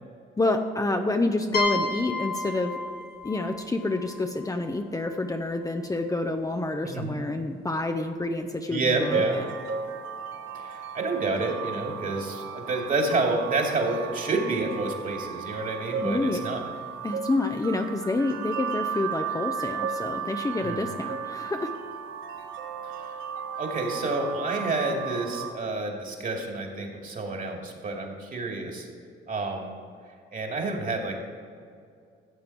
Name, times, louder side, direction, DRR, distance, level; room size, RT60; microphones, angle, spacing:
voice 1, 0.4-2.7 3.2-9.4 16.0-16.4 17.0-21.7, left 2 dB, 15° left, 5 dB, 0.7 m, -28 dB
sound 1, 1.5-5.2, left 2 dB, 50° left, 1.1 m, -32 dB
voice 2, 8.7-9.4 10.5-16.7 20.6-20.9 22.8-23.1 23.6-28.9 29.3-29.8 30.3-31.2, right 3 dB, 45° right, 1 dB, 2.4 m, -29 dB
sound 2, 9.0-25.5, right 7 dB, 90° right, 1.1 m, -34 dB
14.0 x 7.6 x 4.5 m, 2.3 s
cardioid pair, 90°, 20 cm